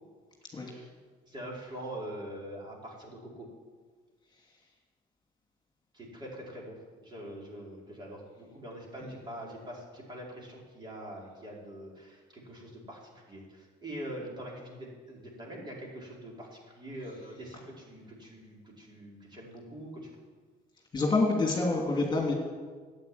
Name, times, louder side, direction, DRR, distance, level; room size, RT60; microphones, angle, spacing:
voice 1, 0.5-0.9 1.3-3.5 5.9-20.1, right 1 dB, 25° right, -3 dB, 4.5 m, -44 dB
voice 2, 20.9-22.3, left 3 dB, 25° left, -1 dB, 2.7 m, -27 dB
11.5 x 8.8 x 9.5 m, 1.5 s
cardioid pair, 110°, 17 cm